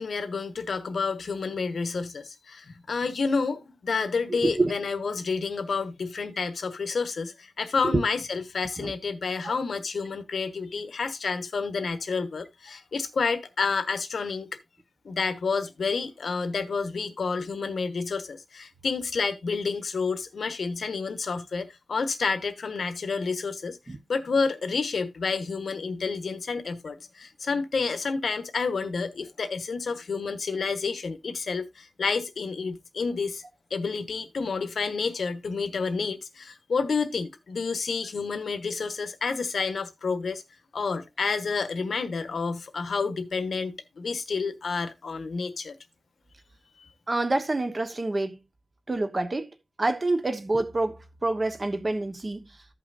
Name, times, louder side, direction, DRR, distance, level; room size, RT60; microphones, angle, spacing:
voice 1, 0.0-14.5 15.0-33.4 33.7-40.4 40.7-45.7 46.8-46.9, left 4 dB, 70° left, 1.2 m, -29 dB
voice 2, 4.4-4.7 7.8-8.0 8.8-8.9 9.4-9.5 23.9-24.0 47.1-48.4 48.9-49.5 49.8-51.0 51.2-52.5, right 2 dB, 30° right, 1.1 m, -27 dB
15.0 x 5.8 x 2.6 m
wide cardioid pair, 140°, 0 cm